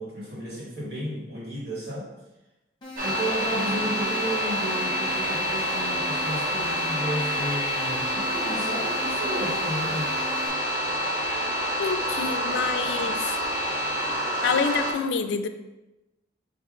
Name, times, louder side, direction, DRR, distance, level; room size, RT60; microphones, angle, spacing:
voice 1, 0.0-2.0 3.0-10.1, equal, 65° right, -6 dB, 1.5 m, -33 dB
sound 1, 2.8-10.5, left 1 dB, 25° left, 1.2 m, -40 dB
sound 2, 3.0-14.9, equal, 45° right, 0.8 m, -27 dB
voice 2, 11.8-13.4 14.4-15.5, left 5 dB, 80° left, 8 dB, 0.3 m, -27 dB
4.6 x 2.5 x 3.6 m, 1.0 s
head